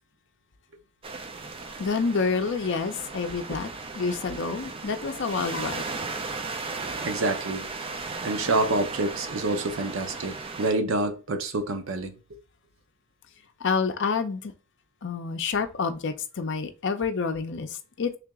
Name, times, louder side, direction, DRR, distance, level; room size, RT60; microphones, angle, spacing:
sound 1, 1.0-10.7, right 3 dB, 25° right, 0.4 m, -36 dB
voice 1, 1.8-3.7 3.9-5.9 13.6-14.5 15.0-17.7 18.0-18.1, left 5 dB, 60° left, 0.5 m, -28 dB
voice 2, 7.0-7.7 8.2-12.1, right 2 dB, 65° right, 0.6 m, -27 dB
3.4 x 2.9 x 3.5 m
head